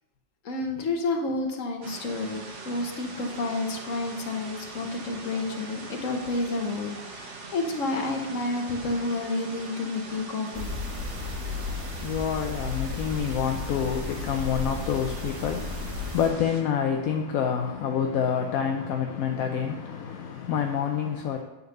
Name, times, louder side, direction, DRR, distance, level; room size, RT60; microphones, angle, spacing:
voice 1, 0.4-10.8, left 2 dB, 60° left, 1.4 m, -30 dB
sound 1, 1.8-16.6, right 3 dB, 55° right, 1.4 m, -42 dB
sound 2, 10.5-16.3, left 3 dB, 15° right, 1.7 m, -34 dB
voice 2, 11.0-21.4, left 7 dB, 75° left, 1.0 m, -28 dB
9.6 x 4.0 x 6.6 m
omnidirectional pair, 1.6 m